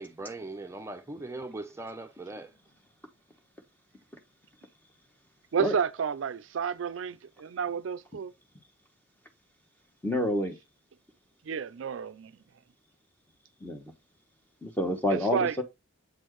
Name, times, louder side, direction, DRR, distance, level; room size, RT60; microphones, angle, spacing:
voice 1, 0.0-2.5, right 2 dB, 15° right, 0.6 m, -40 dB
voice 2, 5.5-8.3 11.4-12.3 15.1-15.5, right 6 dB, 70° right, 0.4 m, -30 dB
voice 3, 10.0-10.6 13.6-13.8 14.6-15.6, left 1 dB, 10° left, 1.1 m, -28 dB
7.8 x 4.4 x 3.0 m
head